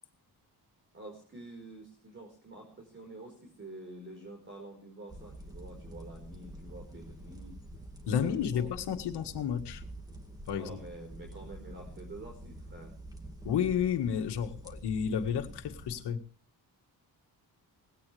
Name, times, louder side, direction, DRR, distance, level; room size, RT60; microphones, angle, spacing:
voice 1, 0.9-7.5 8.0-8.7 10.5-12.9, right 2 dB, 30° right, 2 dB, 4.7 m, -48 dB
sound 1, 5.1-16.0, right 1 dB, 10° right, 2.1 m, -47 dB
voice 2, 8.1-9.8 10.5-10.8 13.4-16.2, left 8 dB, 90° left, 7 dB, 1.8 m, -31 dB
19.5 x 17.0 x 3.4 m, 0.41 s
wide cardioid pair, 150°, 39 cm